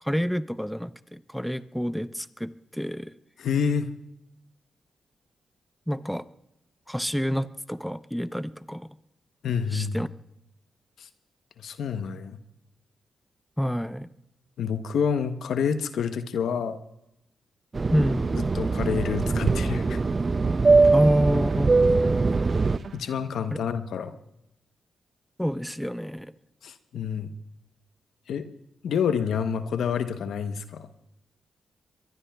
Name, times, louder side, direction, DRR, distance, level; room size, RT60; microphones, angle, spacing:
voice 1, 0.0-3.1 5.9-6.3 6.9-8.9 9.7-10.1 13.6-14.1 17.9-18.4 20.9-21.8 25.4-26.3, equal, ahead, 13 dB, 0.6 m, -28 dB
voice 2, 3.4-3.9 9.4-10.0 11.0-11.1 11.6-12.4 14.6-16.8 18.4-20.0 22.9-24.2 26.6-27.3 28.3-28.5 28.8-30.9, left 7 dB, 75° left, 10 dB, 0.9 m, -28 dB
Fixed-wing aircraft airplane, 17.7-22.8, right 3 dB, 40° right, 0.5 m, -22 dB
sound 1, 20.8-23.5, right 4 dB, 60° right, 1.2 m, -44 dB
23.5 x 22.0 x 2.3 m, 0.85 s
supercardioid pair, 45°, 0 cm